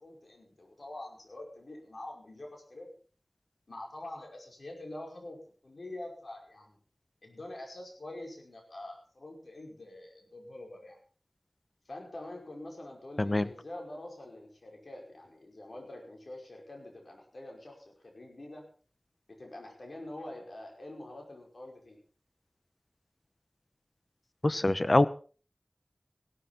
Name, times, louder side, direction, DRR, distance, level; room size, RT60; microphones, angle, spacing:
voice 1, 0.0-2.9 3.7-6.8 7.2-11.0 11.9-18.7 19.3-22.0, left 1 dB, 75° left, 1 dB, 5.2 m, -45 dB
voice 2, 24.4-25.1, left 2 dB, 45° left, 14 dB, 1.0 m, -24 dB
16.5 x 12.5 x 4.4 m, 0.39 s
wide cardioid pair, 50°, 0 cm